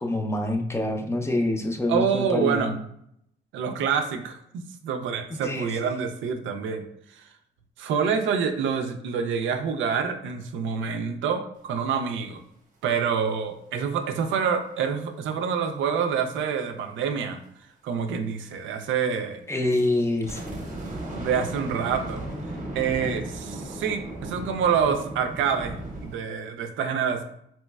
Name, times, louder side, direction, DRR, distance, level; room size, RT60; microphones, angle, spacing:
voice 1, 0.0-2.8 5.3-5.9 19.5-20.4, left 1 dB, 15° left, 3 dB, 0.5 m, -26 dB
voice 2, 1.9-2.7 3.5-6.8 7.8-12.4 12.8-17.4 17.8-19.4 21.2-22.2 22.7-27.2, right 6 dB, 75° right, 6 dB, 0.4 m, -27 dB
sound 1, 19.7-26.2, right 1 dB, 40° right, 0.8 m, -36 dB
3.1 x 2.9 x 2.3 m, 0.72 s
cardioid pair, 90°, 20 cm